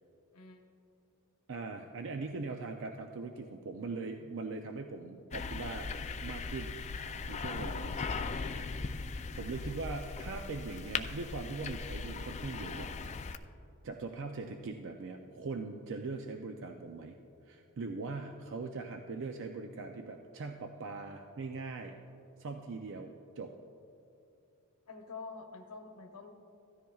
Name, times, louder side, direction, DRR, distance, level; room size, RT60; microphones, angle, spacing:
voice 1, 0.3-0.7 24.9-26.3, left 4 dB, 90° left, 3 dB, 1.0 m, -47 dB
voice 2, 1.5-5.9 6.2-6.8 7.3-8.0 9.4-12.9 13.8-17.2 17.5-22.0 22.4-23.5, right 3 dB, 60° right, 4 dB, 0.5 m, -41 dB
sound 1, 5.3-13.4, left 4 dB, 30° left, 0.4 m, -39 dB
16.0 x 13.0 x 2.4 m, 2.6 s
head